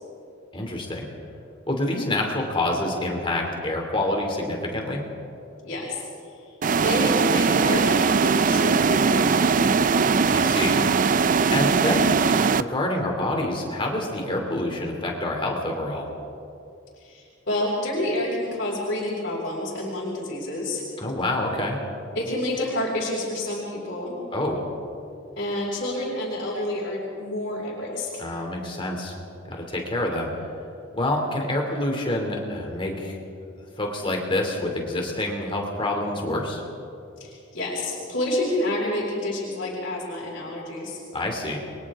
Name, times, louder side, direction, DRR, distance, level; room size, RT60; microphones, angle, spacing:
voice 1, 0.5-1.1 1.7-5.0 10.3-10.8 11.5-16.1 21.0-21.8 24.3-24.6 28.2-29.1 29.5-30.3 30.9-33.2 33.8-36.6 41.1-41.6, left 1 dB, 25° left, 1 dB, 2.9 m, -27 dB
voice 2, 5.6-6.0 6.8-9.6 17.0-20.8 22.1-24.2 25.4-28.3 37.2-41.0, left 1 dB, 60° left, -7 dB, 5.5 m, -28 dB
sound 1, 6.6-12.6, right 5 dB, 40° right, 0.4 m, -20 dB
30.0 x 23.0 x 3.7 m, 2.6 s
head